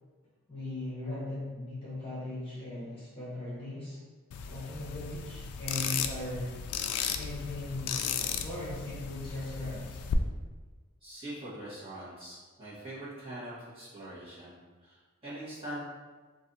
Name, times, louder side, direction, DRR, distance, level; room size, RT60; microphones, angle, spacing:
voice 1, 0.5-4.0 4.5-6.5 7.1-10.0, left 1 dB, 25° left, -9 dB, 1.1 m, -38 dB
sound 1, 4.3-10.1, left 8 dB, 90° left, 0.3 m, -35 dB
voice 2, 11.0-15.0 15.2-15.8, right 1 dB, 25° right, -11 dB, 1.5 m, -43 dB
3.1 x 2.6 x 4.0 m, 1.3 s
head